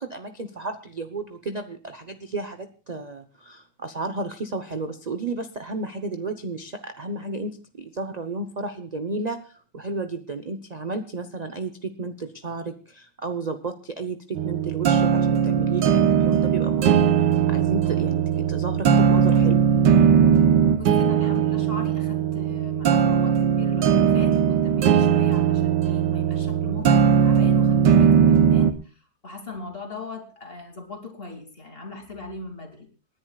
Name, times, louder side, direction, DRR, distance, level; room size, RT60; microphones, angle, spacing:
voice 1, 0.0-17.1 17.5-19.6, right 3 dB, 35° right, 8 dB, 0.6 m, -32 dB
sound 1, 14.4-28.7, right 8 dB, 70° right, 1.6 m, -19 dB
voice 2, 20.8-28.9 29.2-32.9, left 3 dB, 30° left, 4 dB, 2.9 m, -38 dB
28.0 x 10.5 x 2.4 m, 0.36 s
omnidirectional pair, 2.0 m